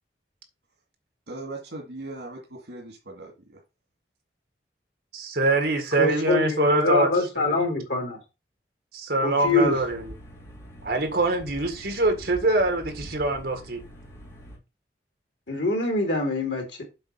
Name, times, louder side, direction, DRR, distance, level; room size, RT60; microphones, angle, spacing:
voice 1, 1.3-3.6, right 2 dB, 85° right, 2.1 m, -39 dB
voice 2, 5.1-7.1 7.4-7.6 8.9-10.1 10.8-13.8, right 2 dB, 65° right, 1.8 m, -24 dB
voice 3, 6.0-8.2 9.2-9.8 15.5-16.8, left 2 dB, 85° left, 3.1 m, -24 dB
sound 1, 9.4-14.6, equal, 15° left, 2.4 m, -44 dB
7.8 x 4.0 x 5.7 m
head